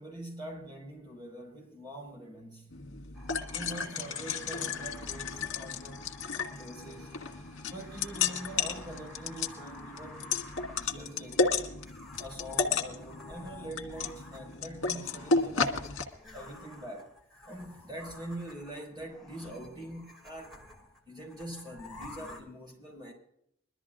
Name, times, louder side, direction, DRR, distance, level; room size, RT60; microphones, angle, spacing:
voice 1, 0.0-2.7 3.5-6.1 6.5-7.2 7.6-10.3 10.8-11.6 12.2-15.9 16.3-17.1 17.4-20.5 21.1-23.1, right 1 dB, 20° right, 5.6 m, -44 dB
sound 1, 2.7-16.0, left 4 dB, 90° left, 1.8 m, -33 dB
sound 2, 3.1-22.4, left 2 dB, ahead, 2.7 m, -51 dB
22.5 x 13.0 x 2.5 m
head